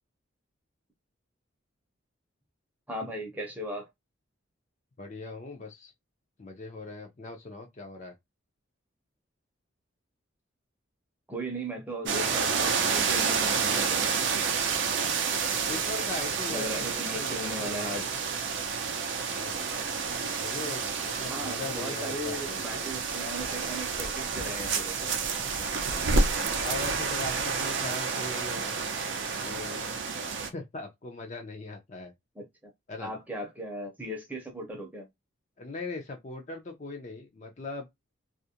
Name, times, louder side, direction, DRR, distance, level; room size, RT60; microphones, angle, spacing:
voice 1, 2.9-3.9 11.3-14.1 16.5-18.1 21.3-25.1 32.4-32.7 33.0-35.1, right 1 dB, 10° right, 0.6 m, -37 dB
voice 2, 5.0-5.9 6.4-8.1 15.7-18.2 19.2-19.6 20.4-23.0 26.6-28.8 29.4-30.0 30.5-32.1 32.9-33.1 35.6-37.9, left 3 dB, 35° left, 0.4 m, -40 dB
sound 1, 12.1-30.5, right 5 dB, 60° right, 0.4 m, -29 dB
2.4 x 2.1 x 2.7 m
head